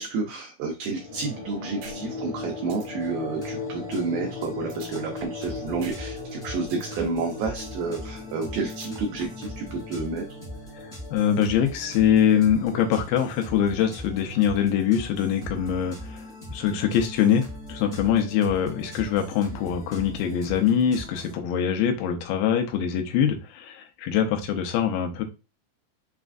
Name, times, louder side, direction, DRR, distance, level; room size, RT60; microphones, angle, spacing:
voice 1, 0.0-10.2 18.2-18.3, right 4 dB, 90° right, 2 dB, 2.0 m, -30 dB
sound 1, 0.9-15.8, left 4 dB, 25° right, 0.6 m, -39 dB
sound 2, 1.8-2.0 2.3-2.4 2.7-2.9 4.7-5.5 5.8-6.0 6.3-6.9 8.7-9.5, right 6 dB, 75° right, 2.0 m, -43 dB
sound 3, 3.0-21.3, equal, 20° left, 0.8 m, -41 dB
voice 2, 10.8-25.2, left 8 dB, 80° left, 4 dB, 2.1 m, -23 dB
6.1 x 2.5 x 2.4 m, 0.29 s
omnidirectional pair, 4.8 m